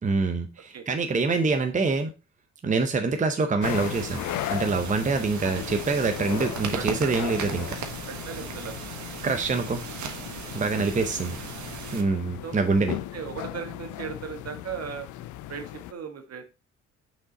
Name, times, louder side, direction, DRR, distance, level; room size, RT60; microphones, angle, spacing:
voice 1, 0.0-2.1 2.6-4.2 4.5-7.8 9.2-9.8 10.5-11.4 11.9-13.0, right 4 dB, 25° right, 6 dB, 0.8 m, -25 dB
sound 1, 3.6-15.9, left 14 dB, 80° left, 0.5 m, -37 dB
sound 2, 3.6-12.0, right 6 dB, 70° right, 1.4 m, -37 dB
voice 2, 6.7-7.1 8.1-8.9 10.6-11.1 12.4-12.6 13.1-15.1 15.5-16.4, right 7 dB, 55° right, 6 dB, 1.6 m, -38 dB
6.2 x 5.2 x 4.1 m, 0.30 s
cardioid pair, 90°, 30 cm